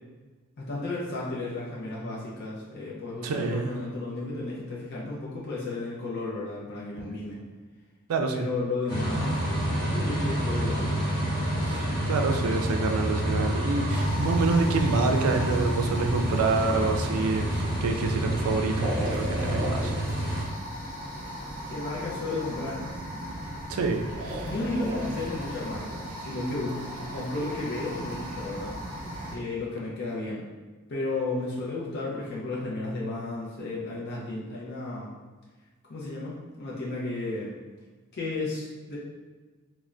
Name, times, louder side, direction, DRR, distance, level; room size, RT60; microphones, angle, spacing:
voice 1, 0.6-7.4 8.3-11.0 21.7-22.8 24.4-28.8 29.3-30.5 30.9-35.1 35.9-37.6 38.1-39.0, left 2 dB, 55° left, -6 dB, 0.6 m, -33 dB
voice 2, 3.2-3.7 8.1-8.4 11.6-19.9 23.7-24.5, right 3 dB, 90° right, 4 dB, 0.3 m, -27 dB
sound 1, 8.9-20.4, right 1 dB, 20° left, 0.8 m, -28 dB
sound 2, 13.9-29.4, equal, 40° right, 0.8 m, -36 dB
3.2 x 2.1 x 2.4 m, 1.3 s
head